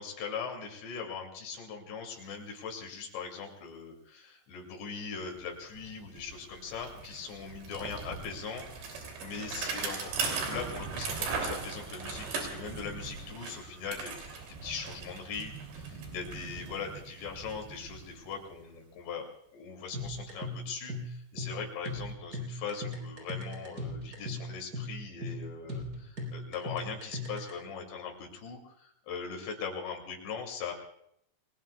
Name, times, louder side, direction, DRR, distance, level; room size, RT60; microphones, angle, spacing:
voice 1, 0.0-10.1 10.5-19.3 19.5-30.7, left 5 dB, 80° left, 1 dB, 4.9 m, -40 dB
Bicycle, 5.4-5.5 5.7-18.6, right 4 dB, 75° right, 5.1 m, -39 dB
sound 1, 19.9-27.5, left 1 dB, 25° right, 3.9 m, -38 dB
29.5 x 20.0 x 2.3 m, 0.74 s
omnidirectional pair, 5.1 m